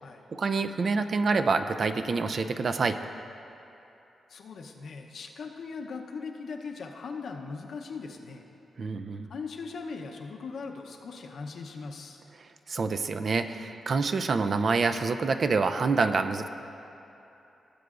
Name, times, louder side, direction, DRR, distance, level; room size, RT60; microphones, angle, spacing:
voice 1, 0.3-3.0 8.8-9.3 12.7-16.5, right 4 dB, 50° right, 8 dB, 0.4 m, -27 dB
voice 2, 4.3-8.5 9.3-12.2, left 4 dB, 70° left, 2 dB, 0.8 m, -39 dB
17.0 x 7.9 x 2.5 m, 2.9 s
cardioid pair, 85°, 0 cm